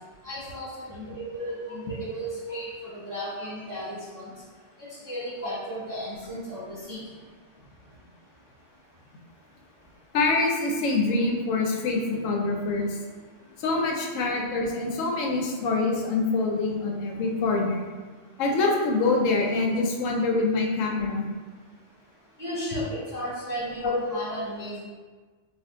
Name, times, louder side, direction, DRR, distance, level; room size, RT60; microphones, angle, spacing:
voice 1, 0.2-2.7 2.9-4.3 4.9-7.0 22.4-24.8, equal, 20° right, -10 dB, 0.5 m, -34 dB
voice 2, 10.1-13.0 13.6-17.9 18.4-21.3 23.8-23.9, left 3 dB, 90° left, 1 dB, 0.9 m, -25 dB
2.5 x 2.4 x 3.5 m, 1.4 s
omnidirectional pair, 1.3 m